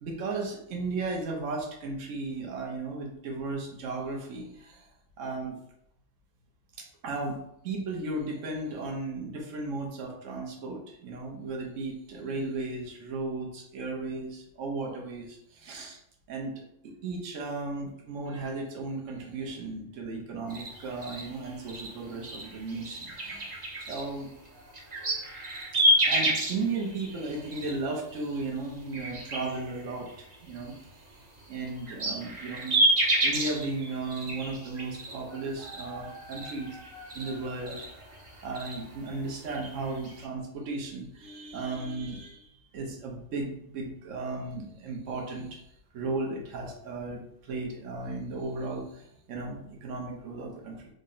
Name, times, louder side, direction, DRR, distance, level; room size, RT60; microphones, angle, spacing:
voice 1, 0.0-4.9 5.2-5.6 6.8-16.0 16.3-16.5 16.8-23.6 23.9-24.3 25.0-25.3 25.7-32.8 33.2-36.8 37.1-37.9 38.4-45.6 45.9-50.9, right 3 dB, 70° right, 0 dB, 1.1 m, -35 dB
sound 1, 20.5-28.4 28.8-30.9 31.4-40.3, right 1 dB, 40° right, 0.8 m, -31 dB
3.9 x 2.1 x 3.8 m, 0.76 s
omnidirectional pair, 1.4 m